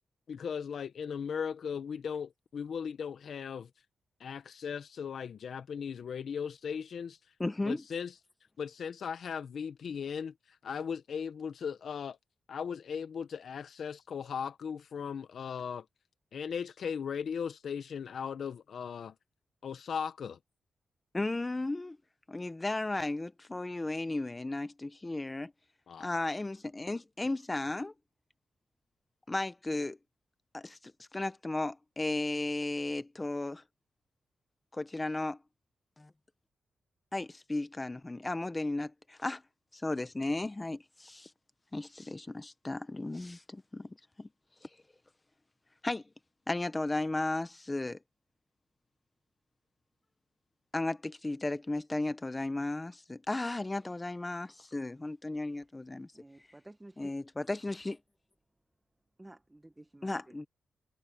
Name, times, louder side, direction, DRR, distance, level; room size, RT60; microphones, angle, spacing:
voice 1, 0.3-3.7 4.2-7.2 7.6-8.2 8.6-10.3 10.6-12.2 12.5-15.8 16.3-19.1 19.6-20.4 25.9-26.1, left 7 dB, 65° left, 1.4 m, -37 dB
voice 2, 7.4-7.8 21.1-22.0 22.3-25.5 26.0-27.9 29.3-30.0 30.5-33.6 34.7-35.4 36.0-36.1 37.1-39.4 39.7-41.3 41.7-44.3 44.6-44.7 45.8-46.0 46.5-48.0 50.7-56.1 57.0-58.0 60.0-60.5, left 2 dB, 20° left, 1.1 m, -35 dB
voice 3, 56.1-57.1 59.2-60.3, right 1 dB, 15° right, 1.3 m, -53 dB
wide cardioid pair, 115°, 0 cm